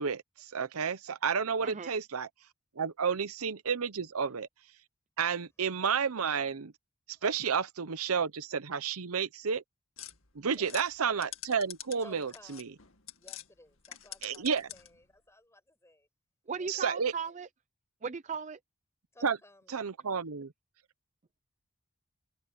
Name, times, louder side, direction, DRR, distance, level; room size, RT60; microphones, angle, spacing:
voice 1, 0.0-2.3 2.8-4.5 5.2-6.7 7.2-9.6 10.3-12.7 14.2-14.7 16.7-17.1 19.2-19.4 19.7-20.5, right 6 dB, 85° right, 0.8 m, -31 dB
sound 1, 10.0-13.5 13.8-15.0, left 12 dB, 65° left, 2.2 m, -46 dB
voice 2, 10.4-10.8 12.0-12.8 13.1-16.1 16.6-17.0 19.1-19.8, left 1 dB, 15° left, 6.8 m, -57 dB
voice 3, 16.5-17.5 18.0-18.6, right 5 dB, 35° right, 0.5 m, -37 dB
head